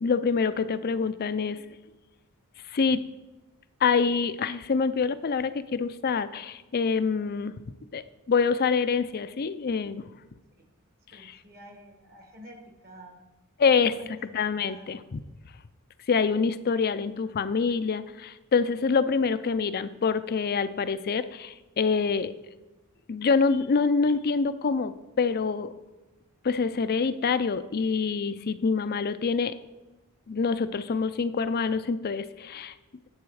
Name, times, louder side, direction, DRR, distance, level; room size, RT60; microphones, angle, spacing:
voice 1, 0.0-1.6 2.7-3.1 3.8-7.5 7.9-10.1 11.1-11.4 13.6-13.9 14.3-15.2 16.1-22.3 23.1-25.7 26.4-29.6 30.3-32.7, left 5 dB, 45° left, 13 dB, 0.5 m, -26 dB
voice 2, 11.1-12.6 12.8-13.2 13.6-14.3 14.7-15.0, right 1 dB, 45° right, 3 dB, 1.5 m, -50 dB
10.5 x 7.7 x 4.8 m, 1.1 s
head